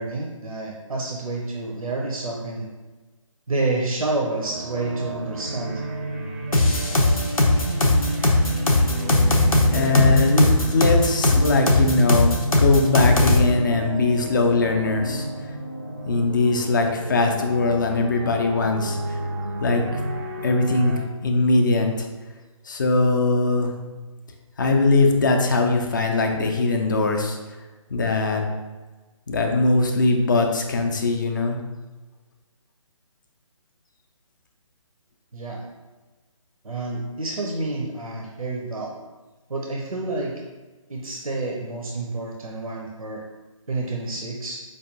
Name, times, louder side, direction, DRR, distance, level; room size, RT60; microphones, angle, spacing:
voice 1, 0.0-2.7 3.5-5.7 35.3-35.6 36.6-38.9 39.5-40.4 40.9-43.2 43.7-44.6, right 2 dB, 85° right, -1 dB, 0.5 m, -29 dB
sound 1, 4.4-21.0, right 2 dB, 30° right, 0.4 m, -31 dB
sound 2, 6.5-13.4, left 2 dB, 85° left, 0.6 m, -19 dB
voice 2, 9.7-15.3 16.1-19.2 19.6-19.8 20.4-22.1 22.7-23.7 24.6-27.4 27.9-28.4 29.3-31.6, left 3 dB, 35° left, 3 dB, 0.4 m, -21 dB
4.6 x 2.2 x 2.7 m, 1.2 s
figure-of-eight pair, 145°, 18 cm